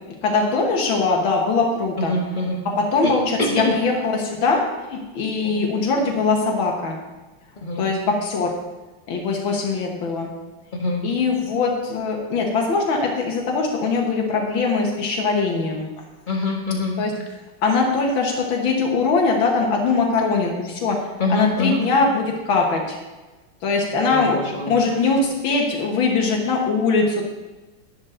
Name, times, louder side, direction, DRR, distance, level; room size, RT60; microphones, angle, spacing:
voice 1, 0.2-2.2 2.8-4.6 4.9-7.0 7.8-8.5 9.1-10.3 11.0-15.9 17.0-17.1 17.6-21.0 21.3-23.0 23.6-24.4 24.7-27.3, left 4 dB, 90° left, 0 dB, 2.1 m, -21 dB
voice 2, 2.0-2.6 3.0-3.1 3.4-3.7 5.4-5.7 7.6-7.9 10.8-11.1 16.3-17.0 21.2-21.8 24.1-24.7, left 2 dB, 25° left, -1 dB, 1.7 m, -24 dB
11.0 x 10.5 x 3.8 m, 1.2 s
omnidirectional pair, 2.1 m